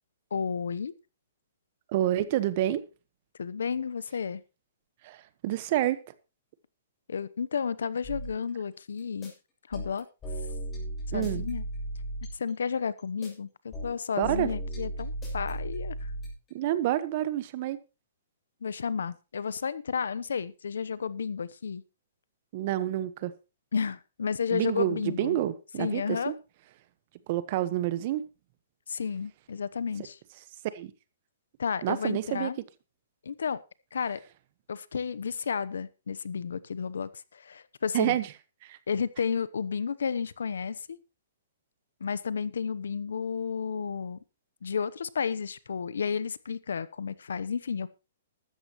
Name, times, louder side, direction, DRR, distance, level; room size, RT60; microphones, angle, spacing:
voice 1, 0.3-0.9 3.4-4.4 7.1-9.3 9.7-10.1 11.1-11.6 12.3-15.9 18.6-21.8 23.7-25.4 25.8-26.3 28.9-30.2 31.6-32.6 33.2-33.6 33.9-34.2 34.7-38.2 38.9-41.0 42.0-44.2 44.6-47.9, left 6 dB, 90° left, 18 dB, 0.9 m, -32 dB
voice 2, 1.9-2.8 5.0-6.0 11.1-11.5 14.2-14.5 16.5-17.8 22.5-23.3 24.5-26.3 27.3-28.2 30.7-30.9 31.8-32.5 37.9-38.3 38.6-38.8, right 13 dB, 40° right, 14 dB, 1.3 m, -28 dB
sound 1, 8.0-8.3 9.0-9.3 9.7-12.5 13.0-13.3 13.7-16.5, right 1 dB, 20° left, 7.5 m, -35 dB
14.0 x 13.0 x 3.1 m, 0.29 s
hypercardioid pair, 155°, 0 cm